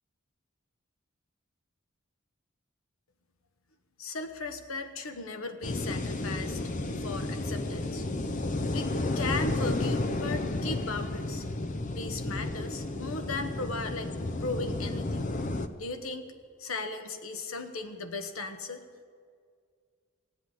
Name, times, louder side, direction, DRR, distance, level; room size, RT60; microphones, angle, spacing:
voice 1, 4.0-6.6 7.0-8.0 8.7-11.4 11.9-14.1 14.4-15.3 15.8-16.3 16.6-18.8, left 3 dB, 85° left, 8 dB, 1.1 m, -37 dB
sound 1, 5.6-15.7, left 2 dB, 40° left, 0.6 m, -32 dB
16.5 x 8.1 x 9.5 m, 2.1 s
head